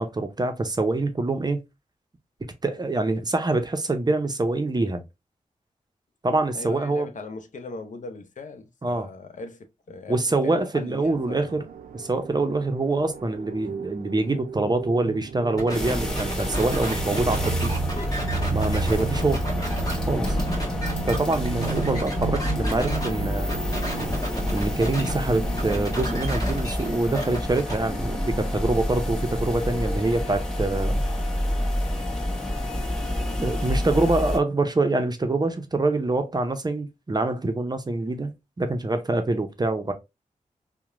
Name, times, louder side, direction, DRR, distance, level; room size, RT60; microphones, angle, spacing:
voice 1, 0.0-1.6 2.6-5.0 6.2-7.1 8.8-9.1 10.1-11.6 11.9-17.7 18.5-19.5 20.1-20.4 21.0-23.6 24.5-31.0 33.4-38.3 38.6-39.9, right 2 dB, 30° right, 0.5 m, -25 dB
voice 2, 6.5-11.6 20.6-20.7, left 3 dB, 60° left, 0.5 m, -39 dB
sound 1, 11.0-28.2, right 5 dB, 90° right, 0.4 m, -34 dB
sound 2, 15.6-23.1 23.5-25.1 25.4-27.7, equal, 25° left, 1.2 m, -32 dB
sound 3, 15.7-34.4, left 1 dB, 5° left, 1.3 m, -28 dB
2.9 x 2.1 x 2.4 m
cardioid pair, 45°, 14 cm